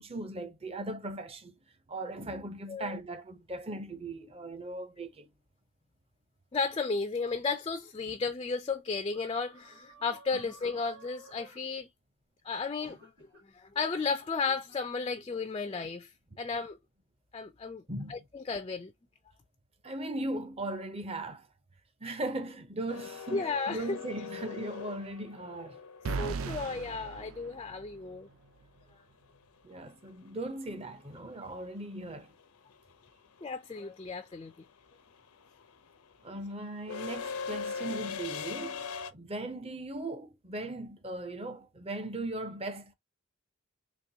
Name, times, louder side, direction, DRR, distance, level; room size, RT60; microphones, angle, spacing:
voice 1, 0.0-1.5 1.9-5.3 10.3-10.4 17.9-18.2 19.8-21.5 22.0-25.8 29.6-32.3 36.2-38.8 39.1-42.9, right 2 dB, 25° right, 0.6 m, -38 dB
voice 2, 2.7-3.0 6.5-11.9 12.4-13.1 13.5-16.1 16.4-16.8 17.3-17.8 18.1-18.9 23.3-24.0 26.2-28.3 33.4-34.5, left 4 dB, 25° left, 0.3 m, -34 dB
sound 1, 9.1-11.7 12.8-13.4 14.1-14.3, right 2 dB, 50° right, 2.4 m, -54 dB
sound 2, 22.9-26.9 29.4-29.5 30.7-31.1 31.3-39.1, left 6 dB, 90° left, 0.6 m, -41 dB
sound 3, 26.1-28.2, right 4 dB, 70° right, 0.4 m, -37 dB
4.3 x 2.9 x 2.7 m
head